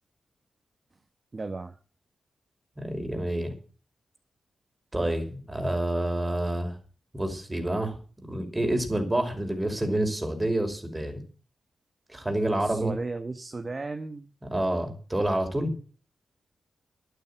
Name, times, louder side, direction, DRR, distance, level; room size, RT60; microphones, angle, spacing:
voice 1, 1.3-1.8 12.6-14.3, right 3 dB, 40° right, 8 dB, 1.3 m, -35 dB
voice 2, 2.8-3.5 4.9-6.8 7.1-11.1 12.1-12.9 14.5-15.7, right 1 dB, 20° right, 4 dB, 5.6 m, -28 dB
11.5 x 10.0 x 9.0 m, 0.39 s
cardioid pair, 65°, 0 cm